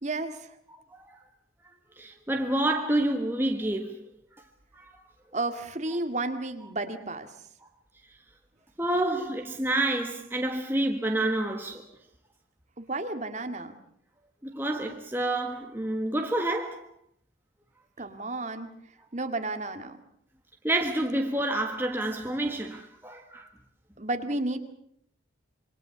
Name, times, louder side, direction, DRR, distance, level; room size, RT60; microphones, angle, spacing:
voice 1, 0.0-0.6 5.3-7.3 12.8-13.8 18.0-18.7 19.1-20.0 24.0-24.6, right 2 dB, 35° right, 2.1 m, -32 dB
voice 2, 0.7-1.1 2.0-4.0 4.7-4.9 8.8-11.8 14.4-16.9 20.6-23.5, right 1 dB, 10° right, 1.5 m, -28 dB
27.0 x 22.5 x 7.0 m
head